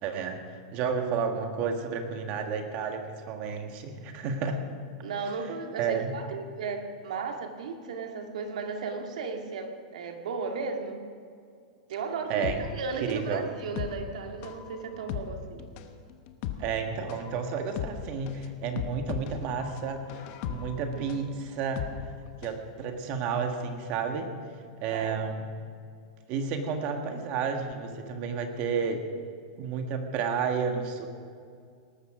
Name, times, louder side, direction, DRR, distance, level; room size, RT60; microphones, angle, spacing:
voice 1, 0.0-0.4 0.7-4.6 5.8-6.1 12.3-12.6 13.0-13.5 16.6-21.9 22.4-24.3 24.8-25.4 26.3-29.1 29.6-31.1, right 5 dB, 35° right, 5 dB, 1.6 m, -31 dB
voice 2, 5.0-11.0 11.9-15.6 20.9-21.0 24.9-25.4, right 4 dB, 85° right, 4 dB, 2.2 m, -35 dB
sound 1, 12.4-22.6 22.9-23.0, left 9 dB, 40° left, 1.1 m, -37 dB
19.0 x 13.5 x 5.0 m, 2.2 s
supercardioid pair, 165°, 4 cm